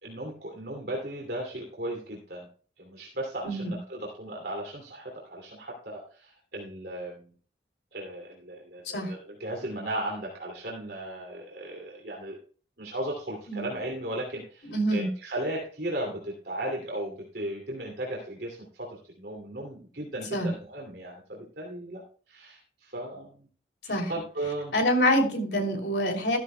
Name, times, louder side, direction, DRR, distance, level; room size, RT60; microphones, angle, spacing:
voice 1, 0.0-2.5 2.8-7.2 7.9-12.4 12.8-22.0 22.3-23.5 23.8-24.7, right 1 dB, 65° right, -1 dB, 2.6 m, -36 dB
voice 2, 14.7-15.1 20.3-20.5 23.9-24.1 24.7-26.4, equal, 75° left, 2 dB, 3.0 m, -25 dB
13.5 x 13.5 x 2.2 m, 0.41 s
head